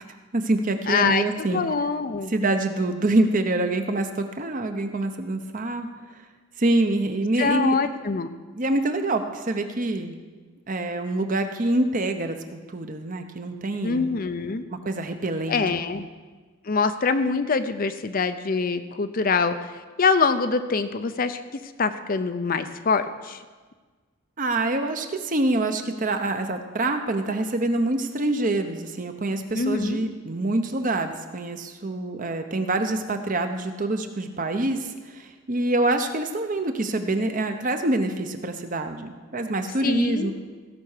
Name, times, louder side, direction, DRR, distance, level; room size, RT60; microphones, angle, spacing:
voice 1, 0.3-1.6 2.3-5.9 6.6-7.8 8.5-10.1 10.7-14.1 14.7-15.6 24.4-40.3, right 2 dB, 40° right, 7 dB, 0.9 m, -26 dB
voice 2, 0.9-2.3 7.4-8.3 13.8-14.6 15.5-16.0 16.6-23.4 29.5-30.1 39.8-40.3, left 4 dB, 40° left, 10 dB, 0.6 m, -24 dB
15.5 x 5.9 x 6.6 m, 1.4 s
head